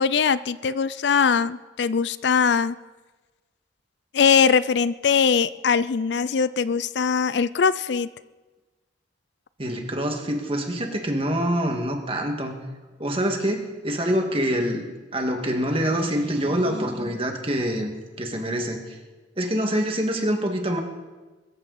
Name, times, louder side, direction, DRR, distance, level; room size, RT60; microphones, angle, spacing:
voice 1, 0.0-2.7 4.1-8.1, left 6 dB, 60° left, 16 dB, 0.4 m, -21 dB
voice 2, 9.6-12.5 13.0-14.9 15.1-17.9 18.2-19.0 19.4-20.8, equal, 30° right, 3 dB, 2.0 m, -25 dB
22.0 x 14.5 x 4.2 m, 1.3 s
head